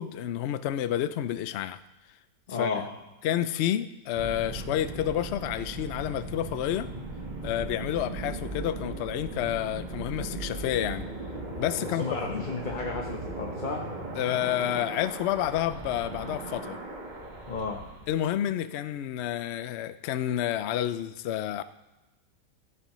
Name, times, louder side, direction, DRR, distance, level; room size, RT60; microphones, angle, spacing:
voice 1, 0.0-1.8 2.5-2.8 3.2-6.9 7.4-11.0 11.6-12.5 14.2-16.8 18.1-21.6, left 11 dB, 70° left, 13 dB, 0.6 m, -29 dB
voice 2, 2.5-2.9 11.8-13.8 17.5-17.8, left 4 dB, 35° left, 0 dB, 0.9 m, -33 dB
sound 1, 4.1-18.3, right 2 dB, 30° right, 1.4 m, -38 dB
16.0 x 11.0 x 3.1 m, 1.1 s
omnidirectional pair, 1.6 m